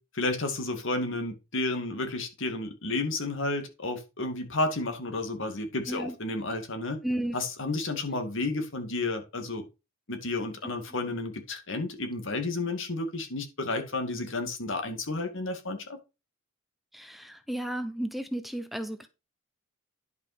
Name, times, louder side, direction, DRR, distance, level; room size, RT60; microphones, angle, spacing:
voice 1, 0.2-7.0 7.3-9.7 10.1-16.0, left 2 dB, 65° left, 2.2 m, -31 dB
voice 2, 7.0-7.4 10.6-10.7 16.9-19.1, right 1 dB, ahead, 0.7 m, -33 dB
10.5 x 5.6 x 5.1 m
head